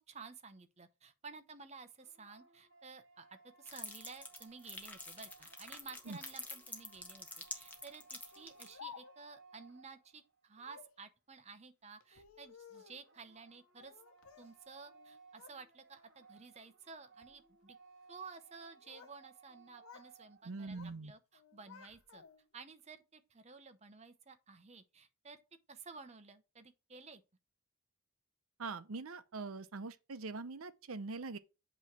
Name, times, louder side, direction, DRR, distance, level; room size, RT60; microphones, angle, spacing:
voice 1, 0.1-13.9 14.4-17.8 18.1-22.2 22.5-25.4 25.7-27.2, right 4 dB, 30° right, 0.7 m, -53 dB
sound 1, 1.7-10.4 12.7-20.5, right 4 dB, 55° right, 1.3 m, -63 dB
sound 2, 3.6-8.7, left 2 dB, 5° left, 1.0 m, -47 dB
Speech, 8.3-9.4 10.6-11.0 12.0-13.1 13.8-14.6 14.9-15.6 16.0-16.4 17.0-17.4 18.5-19.2 19.5-20.1 20.4-21.0 21.3-22.6, left 7 dB, 75° left, 0.7 m, -56 dB
voice 2, 20.4-21.1 28.6-31.4, right 3 dB, 80° right, 0.7 m, -43 dB
8.2 x 3.1 x 5.9 m
head